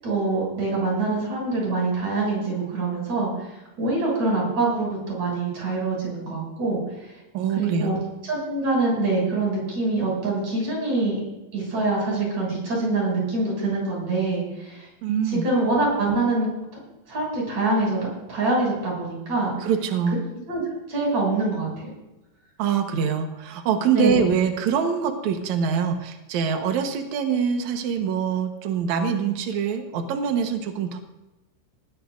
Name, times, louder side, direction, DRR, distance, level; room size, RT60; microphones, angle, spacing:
voice 1, 0.0-7.2 7.5-8.0 8.3-11.2 11.5-14.9 15.3-16.5 17.1-19.5 20.5-20.6 20.9-21.9 23.9-24.4, right 3 dB, 40° right, -3 dB, 8.0 m, -25 dB
voice 2, 7.3-7.9 15.0-15.4 19.6-20.2 22.6-31.0, right 7 dB, 90° right, 5 dB, 1.6 m, -24 dB
19.5 x 18.5 x 2.6 m, 1.0 s
omnidirectional pair, 5.3 m